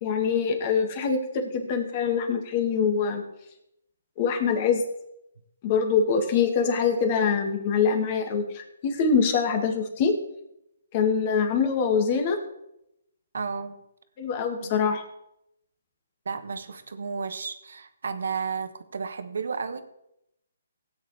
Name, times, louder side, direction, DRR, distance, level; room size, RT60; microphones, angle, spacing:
voice 1, 0.0-3.2 4.2-4.8 5.6-10.1 10.9-12.4 14.2-15.0, left 6 dB, 35° left, 5 dB, 1.9 m, -24 dB
voice 2, 13.3-13.8 14.6-14.7 16.2-19.8, right 5 dB, 75° right, 9 dB, 1.3 m, -32 dB
17.0 x 8.9 x 3.4 m, 0.82 s
hypercardioid pair, 155°, 0 cm